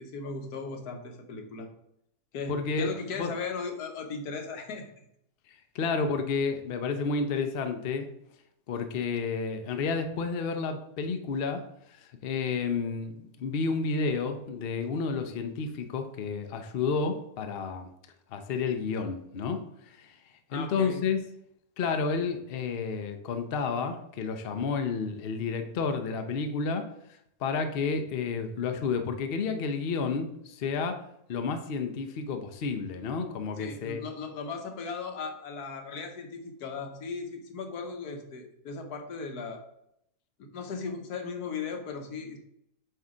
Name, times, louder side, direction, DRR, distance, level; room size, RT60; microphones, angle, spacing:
voice 1, 0.0-1.7 2.3-4.9 20.5-21.0 33.6-39.6 40.4-42.4, left 4 dB, 75° left, 4 dB, 1.4 m, -37 dB
voice 2, 2.5-2.9 3.2-3.3 5.5-8.1 8.7-11.6 11.9-17.9 18.3-20.2 20.5-21.2 21.8-26.9 27.4-31.0 31.3-34.0, left 5 dB, 55° left, 7 dB, 0.6 m, -31 dB
7.7 x 2.8 x 4.9 m, 0.75 s
omnidirectional pair, 1.6 m